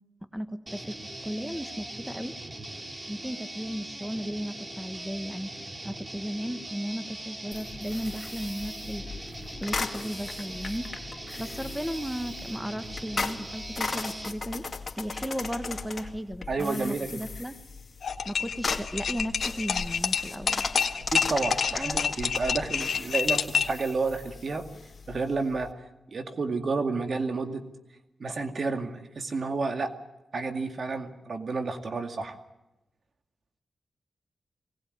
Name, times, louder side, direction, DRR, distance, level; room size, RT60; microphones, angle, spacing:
voice 1, 0.3-1.0 1.2-2.4 3.1-10.9 11.4-14.7 15.0-17.6 18.2-20.6 21.7-22.1, equal, 5° right, 10 dB, 1.4 m, -35 dB
sound 1, 0.7-14.4, right 1 dB, 30° right, 2.3 m, -41 dB
sound 2, 7.5-25.7, left 4 dB, 45° left, 2.4 m, -37 dB
voice 2, 16.5-17.3 20.9-24.7 25.1-25.7 26.1-27.6 28.2-29.9 30.3-32.4, right 3 dB, 60° right, 6 dB, 2.2 m, -30 dB
sound 3, 18.0-23.8, left 6 dB, 70° left, 1.5 m, -28 dB
21.5 x 18.5 x 9.6 m, 0.95 s
cardioid pair, 55°, 0 cm